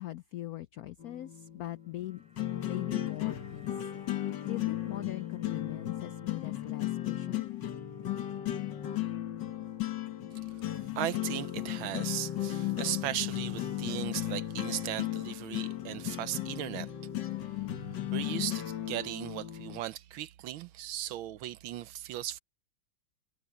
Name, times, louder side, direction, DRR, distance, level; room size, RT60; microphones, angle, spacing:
voice 1, 0.0-2.2 2.6-3.9 4.4-7.4, left 15 dB, 85° left, 0.8 m, -40 dB
sound 1, 1.0-19.8, left 13 dB, 60° left, 1.9 m, -35 dB
sound 2, 1.6-11.8 12.1-12.2, equal, 5° right, 5.1 m, -65 dB
voice 2, 10.9-16.9 18.1-22.4, right 13 dB, 80° right, 1.5 m, -37 dB
omnidirectional pair, 2.2 m